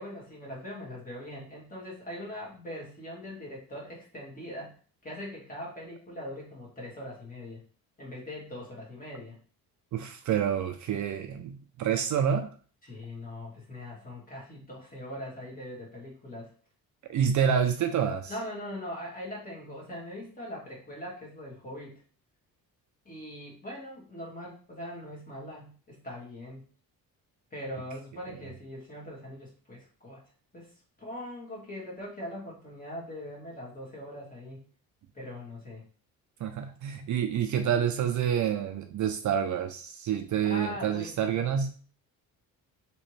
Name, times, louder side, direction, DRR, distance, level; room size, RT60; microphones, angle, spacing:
voice 1, 0.0-4.7 5.0-7.6 8.0-9.4 12.8-16.5 18.3-22.0 23.0-26.6 27.5-30.2 30.5-30.7 31.0-34.6 35.1-35.8 40.4-41.6, left 1 dB, 25° left, -4 dB, 1.7 m, -41 dB
voice 2, 9.9-12.5 17.1-18.3 36.4-41.7, right 8 dB, 55° right, 6 dB, 0.5 m, -28 dB
3.2 x 3.0 x 3.2 m, 0.40 s
cardioid pair, 130°, 36 cm